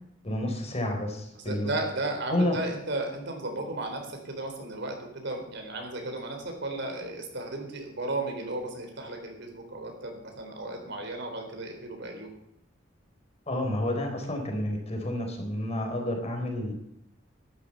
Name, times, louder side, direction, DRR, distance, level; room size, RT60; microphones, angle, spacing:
voice 1, 0.2-1.8 2.3-2.6 13.5-16.7, left 1 dB, 35° left, 3 dB, 4.1 m, -30 dB
voice 2, 1.4-12.3, right 2 dB, 60° right, 3 dB, 4.0 m, -34 dB
12.5 x 11.5 x 6.7 m, 0.77 s
head